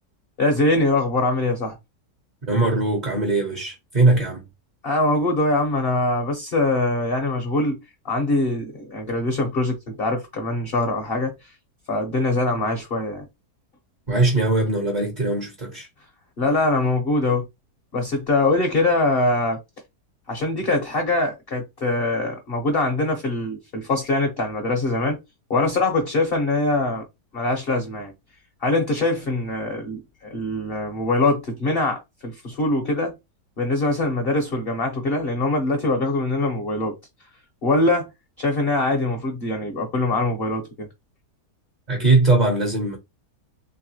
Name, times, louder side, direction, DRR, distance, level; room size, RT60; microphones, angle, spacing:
voice 1, 0.4-1.8 4.8-7.8 8.0-11.5 11.9-13.3 16.4-17.4 17.9-19.6 20.3-25.2 25.5-27.0 27.3-28.1 28.6-33.2 33.6-36.9 37.6-38.1 38.4-40.9, left 2 dB, 45° left, 0.9 m, -23 dB
voice 2, 2.5-4.5 14.1-15.9 41.9-43.0, right 2 dB, 30° right, 0.9 m, -20 dB
3.3 x 3.1 x 2.9 m
omnidirectional pair, 1.7 m